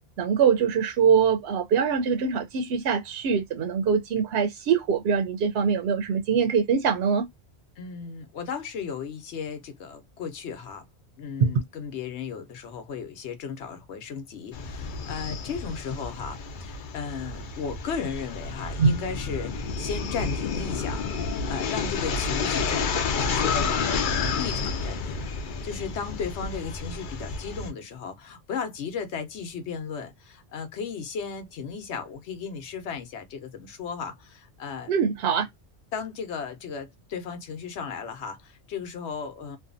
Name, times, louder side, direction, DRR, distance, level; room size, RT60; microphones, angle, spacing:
voice 1, 0.2-7.3 11.4-11.5 18.8-19.0 34.9-35.5, right 6 dB, 70° right, 0.8 m, -23 dB
voice 2, 7.8-10.8 11.2-21.0 21.5-34.9 35.9-39.6, left 6 dB, 85° left, 1.0 m, -35 dB
sound 1, 14.5-27.7, left 4 dB, 55° left, 0.6 m, -30 dB
2.6 x 2.3 x 2.4 m
omnidirectional pair, 1.1 m